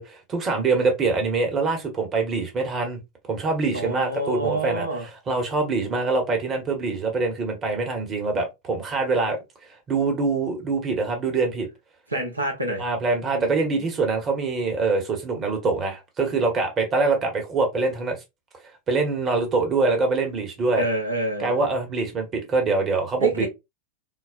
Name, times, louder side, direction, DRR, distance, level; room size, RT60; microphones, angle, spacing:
voice 1, 0.0-3.0 3.2-9.4 9.9-11.7 12.8-18.2 18.9-20.9 21.4-23.5, right 3 dB, 25° right, 0.9 m, -24 dB
voice 2, 3.7-5.1 12.1-12.8 13.3-13.8 20.8-21.6 23.2-23.5, right 2 dB, 85° right, 0.8 m, -27 dB
3.9 x 2.0 x 2.5 m
figure-of-eight pair, 90°, 0 cm